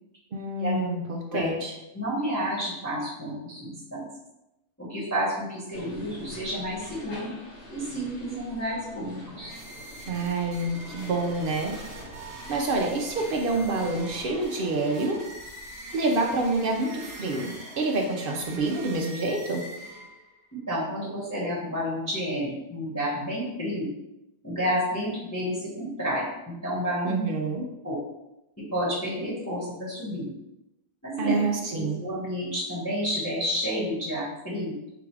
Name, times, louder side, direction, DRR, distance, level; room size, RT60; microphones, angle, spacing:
voice 1, 0.3-1.7 10.1-11.7 12.5-15.2 15.9-19.6 27.0-27.7 31.2-32.0, right 2 dB, 60° right, 1 dB, 0.6 m, -27 dB
voice 2, 1.9-4.0 4.8-7.3 7.7-9.5 20.5-23.9 24.4-27.3 27.8-28.0 28.6-30.3 31.0-31.4 31.8-34.7, equal, 10° left, -7 dB, 1.0 m, -30 dB
sound 1, 5.7-14.5, left 1 dB, 45° left, 0.9 m, -45 dB
sound 2, 9.4-20.4, right 1 dB, 45° right, 1.0 m, -43 dB
3.9 x 2.4 x 4.6 m, 0.93 s
omnidirectional pair, 1.5 m